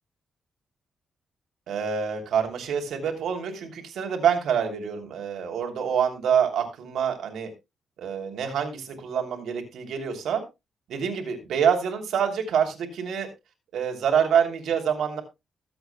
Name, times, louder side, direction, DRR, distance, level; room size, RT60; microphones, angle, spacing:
voice 1, 1.7-7.5 8.0-10.4 10.9-13.3 13.7-15.2, right 7 dB, 90° right, 3 dB, 3.0 m, -26 dB
21.0 x 8.1 x 2.2 m, 0.23 s
cardioid pair, 130°, 0 cm